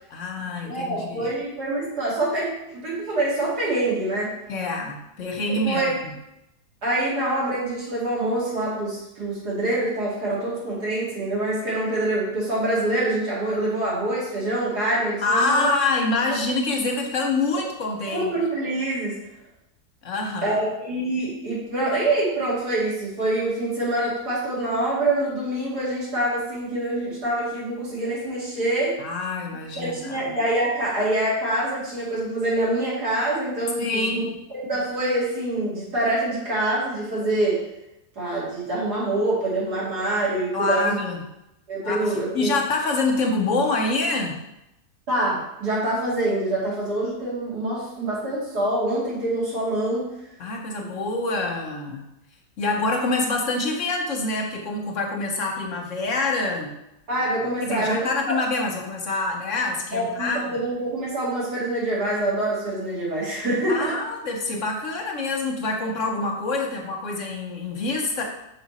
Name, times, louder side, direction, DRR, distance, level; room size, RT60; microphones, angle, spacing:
voice 1, 0.1-1.3 4.5-5.8 15.2-18.3 20.0-20.6 29.0-30.2 33.8-34.3 40.5-41.2 41.8-44.4 50.4-52.0 52.6-56.7 57.6-60.4 63.7-68.2, left 3 dB, 55° left, 1 dB, 1.1 m, -26 dB
voice 2, 0.6-4.3 5.6-5.9 6.8-15.7 18.1-19.2 20.4-29.0 29.8-34.2 34.5-37.6 38.2-41.0 41.7-42.5 45.1-50.1 50.8-50.9 57.1-58.4 59.9-64.0, right 1 dB, 80° right, -7 dB, 3.1 m, -25 dB
6.0 x 5.0 x 4.1 m, 0.87 s
omnidirectional pair, 1.7 m